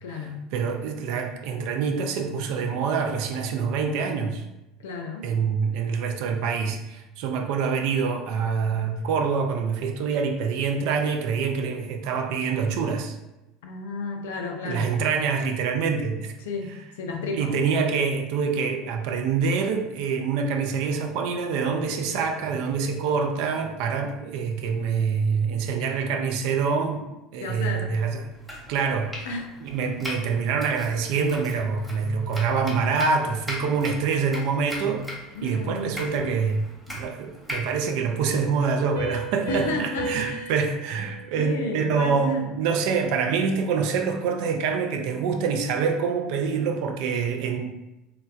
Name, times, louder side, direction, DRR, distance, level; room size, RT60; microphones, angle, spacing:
voice 1, 0.0-0.4 4.8-5.3 13.6-14.9 16.4-17.6 27.4-27.9 29.2-29.6 30.0-30.2 35.3-36.0 39.5-40.5 41.4-42.5, left 3 dB, 65° left, 3 dB, 0.4 m, -32 dB
voice 2, 0.5-4.4 5.2-13.2 14.6-16.3 17.3-27.1 27.3-28.2 28.7-29.3 29.6-35.1 35.4-36.6 36.9-47.8, right 5 dB, 60° right, 4 dB, 0.3 m, -26 dB
Domestic sounds home sounds, 28.3-39.0, left 1 dB, ahead, 1.0 m, -40 dB
Piano, 39.0-42.4, right 2 dB, 80° right, 0.9 m, -35 dB
3.2 x 2.1 x 2.3 m, 0.97 s
figure-of-eight pair, 70°, 0 cm